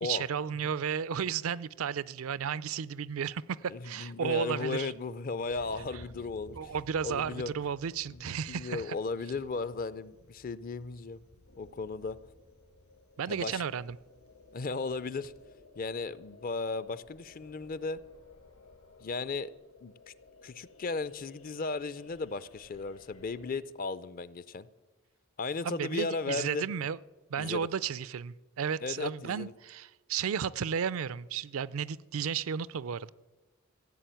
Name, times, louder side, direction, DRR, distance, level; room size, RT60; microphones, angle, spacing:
voice 1, 0.0-4.9 6.5-9.0 13.2-14.0 25.6-27.0 27.3-33.1, right 7 dB, 70° right, 0.4 m, -33 dB
voice 2, 3.7-6.7 7.0-7.5 8.1-11.2 11.6-12.2 13.3-13.6 14.5-15.3 15.8-18.0 19.0-19.5 19.8-19.9 20.4-24.7 25.4-26.7 27.4-27.7 28.8-29.5, left 4 dB, 40° left, 0.5 m, -36 dB
Thunder, 5.2-15.4, equal, 80° left, 1.8 m, -57 dB
sound 1, 11.5-23.5, left 3 dB, 65° left, 1.5 m, -58 dB
15.5 x 7.4 x 9.2 m
head